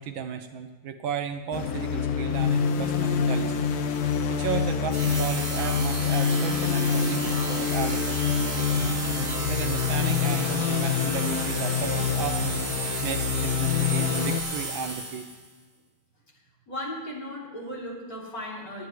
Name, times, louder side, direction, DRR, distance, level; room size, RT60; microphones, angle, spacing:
voice 1, 0.0-3.7 4.3-9.0 9.5-12.7 13.0-15.3, right 8 dB, 75° right, 8 dB, 1.3 m, -34 dB
sound 1, 1.5-14.4, left 7 dB, 60° left, 1.0 m, -26 dB
sound 2, 4.9-15.5, right 3 dB, 35° right, 1.9 m, -33 dB
voice 2, 16.7-18.9, equal, 40° left, -5 dB, 3.6 m, -36 dB
24.5 x 9.6 x 3.1 m, 1.3 s
omnidirectional pair, 2.4 m